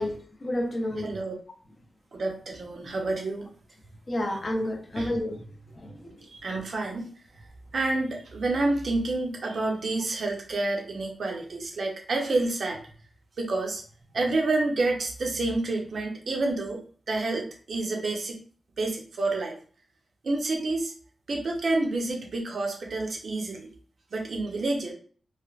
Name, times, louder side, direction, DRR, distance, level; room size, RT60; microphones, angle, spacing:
voice 1, 0.0-1.2 4.1-5.5 5.7-6.3, left 1 dB, 30° left, 0.5 m, -30 dB
voice 2, 1.0-1.3 2.1-3.5 5.0-5.1 6.4-7.1 7.7-12.8 13.4-13.8 14.1-16.8 17.1-18.4 18.8-19.6 20.2-20.9 21.3-23.7 24.1-24.9, right 2 dB, 55° right, 0.6 m, -28 dB
3.2 x 2.0 x 2.4 m
wide cardioid pair, 145°, 0 cm